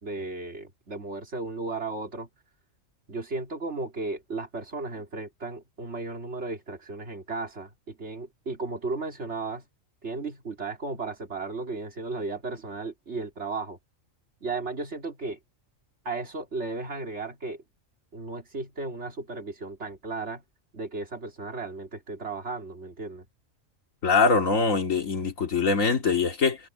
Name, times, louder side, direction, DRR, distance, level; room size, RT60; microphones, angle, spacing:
voice 1, 0.0-2.3 3.1-9.7 10.0-13.8 14.4-15.4 16.0-17.6 18.1-20.4 20.7-23.3, right 3 dB, 55° right, 3.2 m, -35 dB
voice 2, 24.0-26.6, left 4 dB, 75° left, 2.6 m, -23 dB
omnidirectional pair, 1.4 m